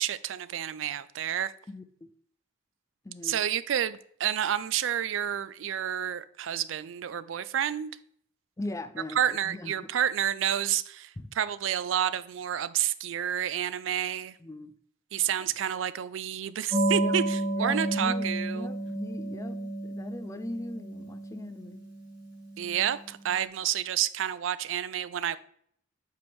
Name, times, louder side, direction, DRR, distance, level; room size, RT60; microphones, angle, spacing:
voice 1, 0.0-1.5 3.2-7.9 9.2-14.4 15.1-18.7 22.6-25.4, right 10 dB, 80° right, 0.4 m, -29 dB
voice 2, 1.7-2.1 3.0-3.4 8.6-9.7 11.2-11.3 14.4-14.7 17.0-17.2 17.5-18.3 18.5-21.8, left 1 dB, 15° left, 0.4 m, -39 dB
sound 1, 16.7-22.9, right 1 dB, 20° right, 2.2 m, -31 dB
7.7 x 4.7 x 3.5 m
head